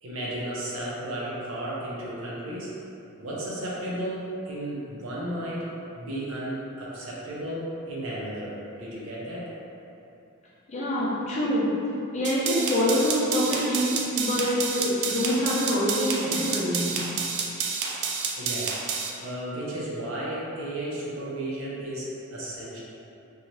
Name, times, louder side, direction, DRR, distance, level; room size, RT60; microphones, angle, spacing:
voice 1, 0.0-2.7 3.2-9.5 18.4-22.8, right 1 dB, 70° right, -6 dB, 0.7 m, -34 dB
voice 2, 10.7-11.9 12.1-17.1, equal, 35° left, -8 dB, 0.6 m, -25 dB
sound 1, 12.2-19.1, right 5 dB, 55° right, 0.3 m, -29 dB
2.7 x 2.3 x 3.1 m, 2.8 s
head